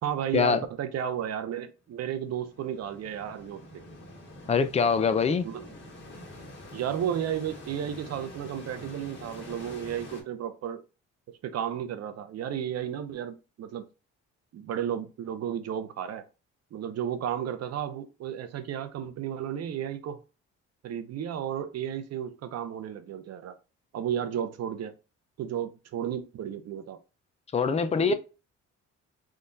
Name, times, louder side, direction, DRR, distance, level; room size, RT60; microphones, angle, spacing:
voice 1, 0.0-3.8 5.4-5.6 6.7-10.8 11.4-13.8 14.5-16.2 16.7-20.2 20.8-23.6 23.9-24.9 25.4-27.0 27.9-28.1, right 9 dB, 55° right, 0.6 m, -33 dB
sound 1, 2.0-10.2, left 1 dB, 40° left, 1.4 m, -46 dB
voice 2, 4.5-5.5 27.5-28.1, left 5 dB, 20° left, 0.4 m, -23 dB
3.7 x 2.3 x 2.6 m
cardioid pair, 90°, 30 cm